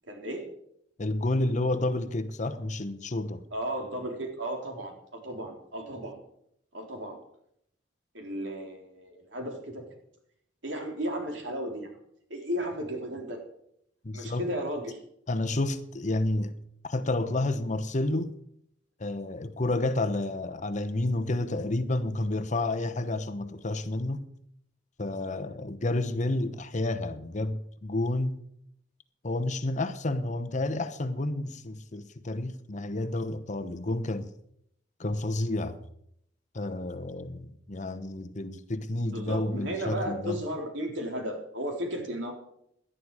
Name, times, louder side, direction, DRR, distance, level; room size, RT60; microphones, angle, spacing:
voice 1, 0.1-0.5 3.5-6.2 6.7-7.2 8.1-9.6 10.6-11.9 12.3-13.4 14.1-15.0 39.0-42.3, equal, 75° right, 3.9 m, -34 dB
voice 2, 1.0-3.4 14.0-14.5 15.3-16.5 16.8-18.3 19.0-24.3 25.0-28.4 29.2-34.3 35.0-35.8 36.5-40.4, left 2 dB, 40° left, 0.9 m, -30 dB
18.0 x 11.5 x 4.9 m
head